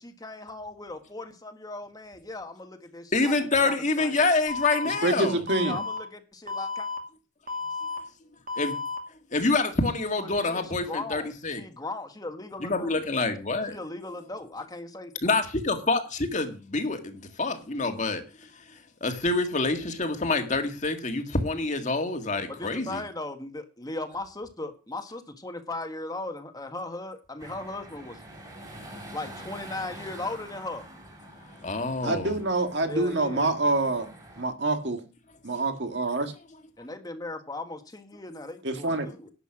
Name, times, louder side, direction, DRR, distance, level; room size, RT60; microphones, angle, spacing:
voice 1, 0.0-3.3 3.6-4.2 5.6-6.9 10.2-12.9 13.7-15.1 22.5-28.2 29.1-30.9 32.9-33.6 36.8-39.3, left 2 dB, 20° left, 1.5 m, -38 dB
voice 2, 3.1-5.4 8.6-8.7 9.3-11.6 12.6-13.8 15.2-18.5 19.0-23.0 31.6-32.4, left 3 dB, 40° left, 1.8 m, -27 dB
Alarm, 4.5-5.0 5.5-6.0 6.5-7.0 7.5-8.0 8.5-9.0, left 4 dB, 45° right, 2.2 m, -32 dB
voice 3, 5.0-5.8 32.0-34.1 34.4-35.0 35.4-36.3 38.6-39.1, right 2 dB, 65° right, 1.9 m, -26 dB
sound 1, 27.4-34.4, right 1 dB, 20° right, 3.8 m, -46 dB
11.5 x 8.0 x 6.0 m
head